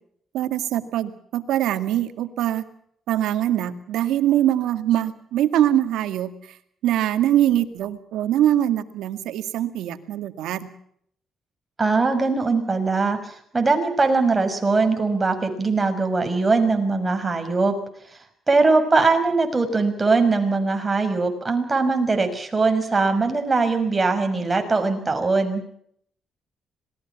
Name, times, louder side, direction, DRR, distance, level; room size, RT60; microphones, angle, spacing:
voice 1, 0.3-2.6 3.1-6.3 6.8-10.7, right 12 dB, 85° right, 10 dB, 2.0 m, -23 dB
voice 2, 11.8-17.8 18.5-25.6, right 3 dB, 25° right, 6 dB, 6.0 m, -21 dB
26.5 x 20.5 x 5.9 m, 0.68 s
cardioid pair, 90°, 0 cm